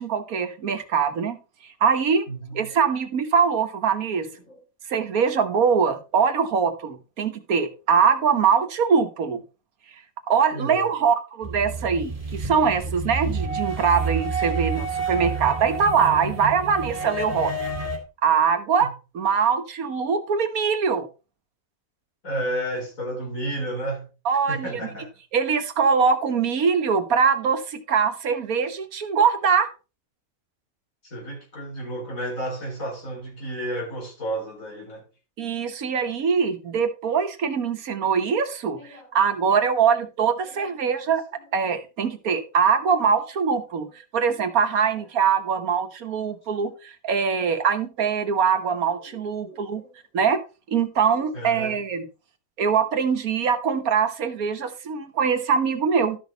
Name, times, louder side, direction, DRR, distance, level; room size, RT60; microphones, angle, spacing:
voice 1, 0.0-1.4 1.8-2.2 2.5-4.3 4.9-9.4 10.3-17.5 18.2-18.9 19.1-21.1 24.2-24.9 25.3-29.7 35.4-41.2 41.5-43.9 44.1-49.8 50.1-50.4 50.7-52.0 52.6-56.2, right 6 dB, 90° right, 1.6 m, -22 dB
voice 2, 2.3-2.7 4.5-4.6 10.5-10.9 18.8-18.9 22.2-24.1 24.5-25.1 31.0-35.0 38.8-39.1 40.4-40.6 49.0-49.2 49.4-49.9 51.3-51.8, right 1 dB, 70° left, 4.9 m, -32 dB
sound 1, 11.4-18.0, right 3 dB, 25° right, 2.2 m, -29 dB
12.5 x 6.2 x 3.9 m
omnidirectional pair, 1.5 m